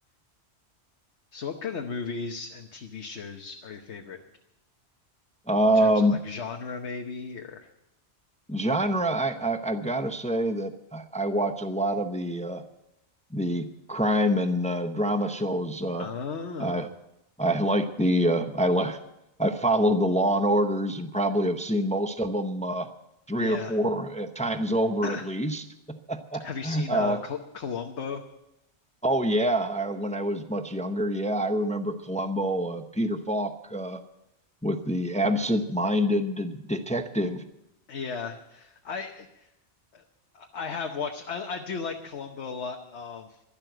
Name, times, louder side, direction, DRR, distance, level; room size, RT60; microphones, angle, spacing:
voice 1, 1.3-4.2 5.7-7.7 16.0-16.9 23.4-23.8 25.0-25.3 26.4-28.2 37.9-39.5 39.9-40.0 40.3-43.4, left 5 dB, 80° left, 3 dB, 1.3 m, -35 dB
voice 2, 5.5-6.2 8.5-12.6 13.3-16.1 16.6-16.9 17.4-19.0 19.4-22.9 23.3-27.2 29.0-34.0 34.6-37.4, equal, 10° left, 8 dB, 0.7 m, -26 dB
12.0 x 12.0 x 7.9 m, 0.86 s
omnidirectional pair, 1.1 m